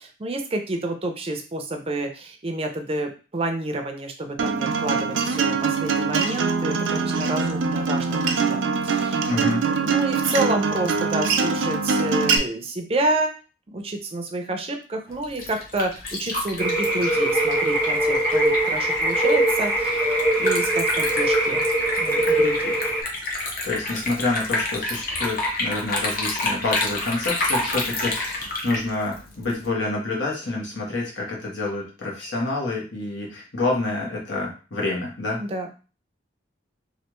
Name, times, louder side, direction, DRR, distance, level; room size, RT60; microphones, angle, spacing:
voice 1, 0.0-13.3 13.7-21.7 22.0-22.9 35.4-35.7, right 2 dB, 30° right, 5 dB, 0.5 m, -29 dB
Acoustic guitar, 4.4-12.4, right 5 dB, 90° right, 0.4 m, -23 dB
voice 2, 9.3-9.6 23.6-35.4, left 2 dB, 80° left, -3 dB, 1.2 m, -28 dB
Liquid, 15.1-29.7, left 2 dB, 50° left, 0.8 m, -29 dB
sound 1, 16.6-23.0, right 1 dB, 10° left, 0.8 m, -22 dB
3.2 x 2.4 x 3.0 m, 0.35 s
head